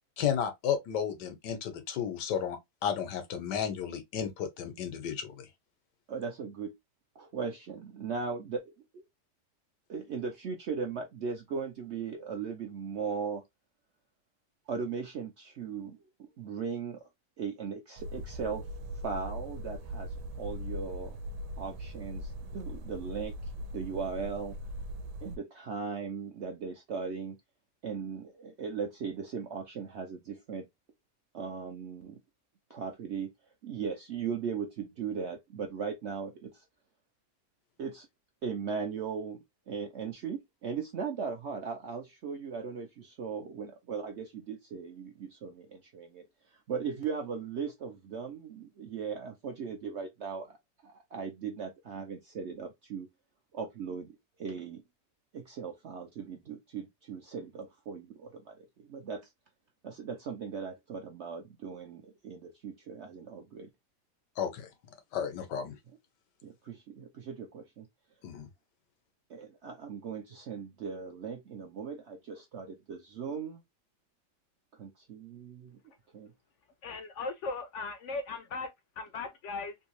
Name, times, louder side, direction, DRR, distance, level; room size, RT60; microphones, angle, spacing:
voice 1, 0.2-5.5 64.4-64.7 65.1-65.8 68.2-68.5, left 8 dB, 90° left, 1.5 m, -33 dB
voice 2, 6.1-6.7 7.2-8.6 8.9-9.0 9.9-13.4 14.7-17.1 17.4-18.7 19.0-21.2 21.6-24.6 25.2-27.4 27.8-30.7 31.3-32.2 32.7-33.3 33.6-36.6 37.8-38.1 38.4-50.6 50.8-53.1 53.5-54.8 55.3-59.3 59.8-63.7 66.4-67.9 69.3-73.6 74.7-75.8 76.1-76.3, right 6 dB, 65° right, 0.7 m, -38 dB
sound 1, 18.0-25.4, equal, 80° right, 1.2 m, -40 dB
voice 3, 76.8-78.7 79.0-79.8, left 3 dB, 70° left, 0.7 m, -37 dB
3.4 x 2.7 x 3.0 m
omnidirectional pair, 1.8 m